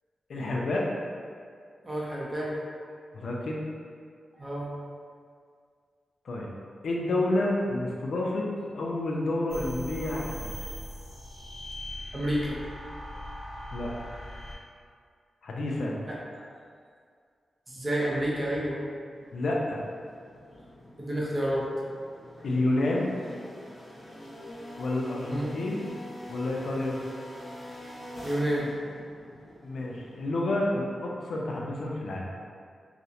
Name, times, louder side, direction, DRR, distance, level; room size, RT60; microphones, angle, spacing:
voice 1, 0.3-0.9 3.1-3.6 6.2-6.5 6.8-8.5 8.7-10.5 13.7-13.9 15.4-15.9 19.3-19.8 22.4-23.1 24.8-25.8 26.3-27.0 29.6-32.3, left 2 dB, 75° left, -2 dB, 0.3 m, -29 dB
voice 2, 1.8-2.6 4.4-4.7 12.1-12.5 16.1-16.2 17.7-18.8 21.0-21.7 25.3-25.5 28.2-28.7, right 1 dB, 25° right, -5 dB, 0.5 m, -29 dB
sound 1, 9.5-14.5, left 1 dB, 65° right, 0.9 m, -40 dB
sound 2, 19.1-30.9, left 1 dB, 30° left, 0.7 m, -45 dB
2.4 x 2.0 x 2.7 m, 2.1 s
wide cardioid pair, 115°, 0 cm